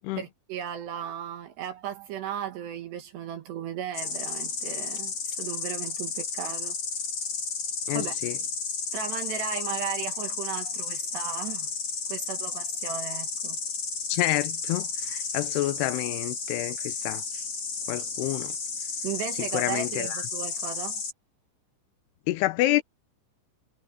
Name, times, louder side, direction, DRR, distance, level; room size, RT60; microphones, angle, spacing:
voice 1, 0.2-6.8 7.9-8.2 8.9-11.7 12.1-13.6 19.0-21.0, right 9 dB, 65° right, 3.4 m, -36 dB
Insect, 3.9-21.1, left 5 dB, 35° left, 3.5 m, -33 dB
voice 2, 7.9-8.4 14.1-17.2 17.9-18.5 19.5-20.2 22.3-22.8, left 17 dB, 90° left, 2.3 m, -28 dB
omnidirectional pair, 5.7 m